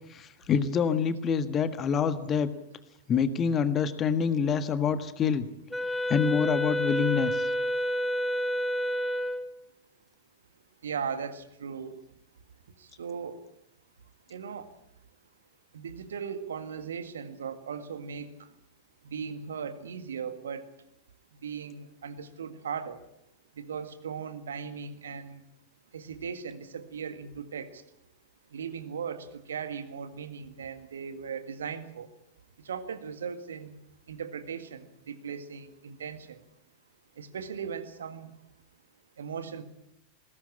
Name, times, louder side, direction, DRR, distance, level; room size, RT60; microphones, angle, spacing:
voice 1, 0.1-2.5 3.1-5.5 6.1-7.4, left 6 dB, 25° left, 11 dB, 1.6 m, -26 dB
Wind instrument woodwind instrument, 5.7-9.5, equal, ahead, 1.3 m, -29 dB
voice 2, 10.8-11.9 12.8-13.4 14.3-14.7 15.7-18.5 19.0-20.7 21.4-23.0 23.6-25.4 25.9-27.8 28.5-32.1 32.6-33.7 34.1-36.4 37.2-38.3 39.2-39.6, right 6 dB, 65° right, 10 dB, 1.9 m, -38 dB
20.5 x 17.0 x 8.8 m, 0.81 s
figure-of-eight pair, 90°, 0 cm